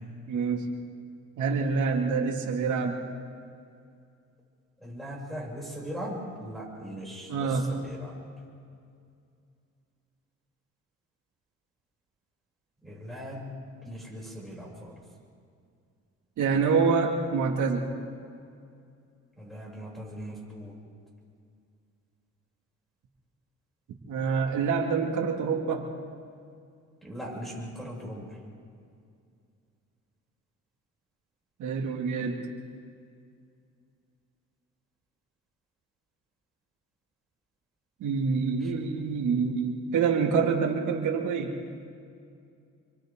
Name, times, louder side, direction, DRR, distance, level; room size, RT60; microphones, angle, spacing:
voice 1, 0.3-0.6 1.4-3.0 7.3-7.6 16.4-17.9 24.1-25.9 31.6-32.4 38.0-41.5, right 5 dB, 75° right, 1 dB, 2.5 m, -26 dB
voice 2, 4.8-8.2 12.8-13.5 13.9-15.0 19.4-20.7 27.0-28.4, equal, ahead, -3 dB, 7.4 m, -39 dB
28.5 x 24.0 x 3.8 m, 2.4 s
cardioid pair, 90°, 30 cm